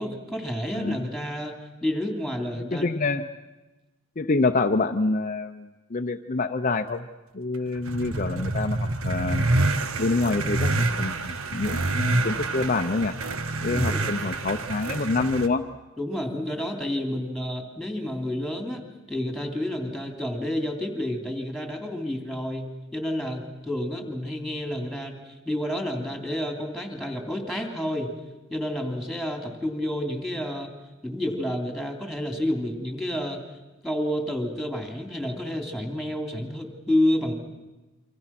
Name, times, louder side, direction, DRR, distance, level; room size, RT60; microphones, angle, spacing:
voice 1, 0.0-1.5 1.8-2.9 13.7-14.0 16.0-28.1 28.5-30.8 31.0-33.4 33.8-37.3, left 1 dB, ahead, 3 dB, 3.1 m, -29 dB
voice 2, 2.7-3.3 4.2-7.1 7.3-9.5 10.0-13.1 13.6-15.6, left 3 dB, 40° left, 5 dB, 0.7 m, -26 dB
sound 1, 7.7-15.5, right 2 dB, 85° right, 1.4 m, -27 dB
28.0 x 25.0 x 6.0 m, 1.1 s
head